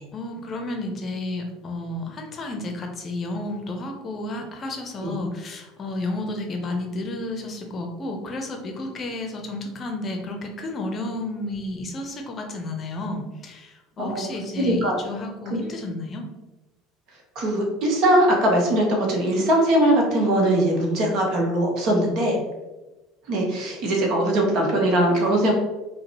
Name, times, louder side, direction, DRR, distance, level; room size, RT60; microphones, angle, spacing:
voice 1, 0.1-16.2, left 2 dB, 35° left, 3 dB, 0.7 m, -32 dB
voice 2, 14.6-14.9 15.5-15.6 17.3-22.4 23.3-25.5, right 1 dB, 50° right, 1 dB, 1.0 m, -21 dB
5.0 x 2.2 x 2.9 m, 1.1 s
figure-of-eight pair, 65°, 0 cm